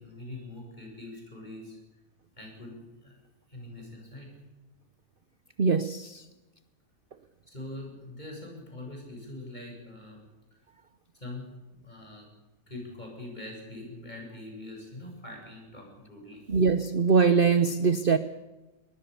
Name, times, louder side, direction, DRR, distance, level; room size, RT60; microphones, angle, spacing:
voice 1, 0.0-1.8 2.4-3.2 3.5-4.3 7.5-10.3 11.1-12.3 12.7-16.6, left 2 dB, 30° left, 0 dB, 8.3 m, -43 dB
voice 2, 5.6-6.2 16.5-18.2, right 5 dB, 45° right, 12 dB, 0.9 m, -22 dB
23.0 x 20.5 x 7.0 m, 1.1 s
omnidirectional pair, 1.6 m